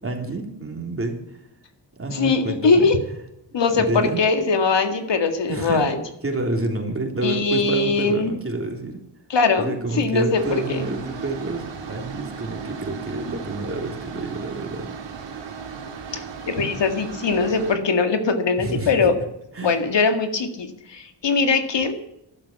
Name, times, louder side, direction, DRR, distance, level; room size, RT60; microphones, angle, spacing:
voice 1, 0.0-1.4 2.0-2.9 3.7-4.2 5.5-5.9 6.2-9.0 9.6-14.9 18.6-19.1 19.5-19.8, right 2 dB, 30° right, 3 dB, 3.3 m, -28 dB
voice 2, 2.1-3.0 3.5-6.0 7.2-8.3 9.3-10.4 10.7-10.8 16.1-19.2 19.6-22.0, left 4 dB, 75° left, 7 dB, 2.0 m, -21 dB
sound 1, 10.3-17.8, right 6 dB, 80° right, 2.4 m, -36 dB
12.0 x 12.0 x 7.2 m, 0.81 s
wide cardioid pair, 90°, 44 cm